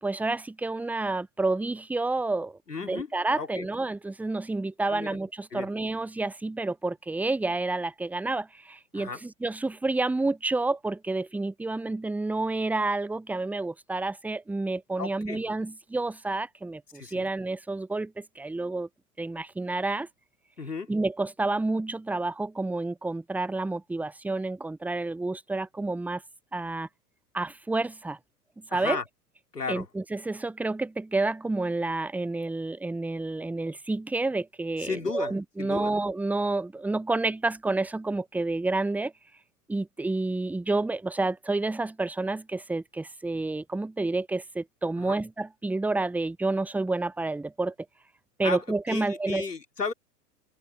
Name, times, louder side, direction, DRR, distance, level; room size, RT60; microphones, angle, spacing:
voice 1, 0.0-18.9 19.2-20.1 20.9-26.2 26.5-26.9 27.3-28.2 28.6-29.0 29.7-39.1 39.7-47.7 48.4-49.5, right 2 dB, 5° right, 0.9 m, -29 dB
voice 2, 2.7-3.1 3.4-3.7 4.9-5.2 5.5-5.7 8.9-9.2 15.0-15.5 16.9-17.2 20.6-20.9 28.7-29.0 29.5-29.9 34.8-35.9 45.0-45.2 48.4-49.9, left 4 dB, 85° left, 3.3 m, -34 dB
figure-of-eight pair, 100°, 47 cm